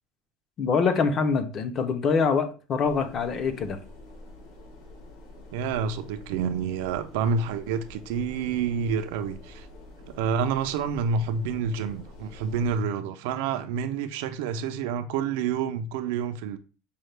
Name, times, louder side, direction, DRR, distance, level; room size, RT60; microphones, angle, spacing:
voice 1, 0.6-3.8, left 5 dB, 30° left, 0.4 m, -24 dB
sound 1, 2.8-12.8, left 2 dB, 70° left, 1.2 m, -47 dB
voice 2, 5.5-9.7 10.1-16.6, right 6 dB, 85° right, 0.4 m, -28 dB
5.3 x 2.1 x 3.2 m
cardioid pair, 175°, 0 cm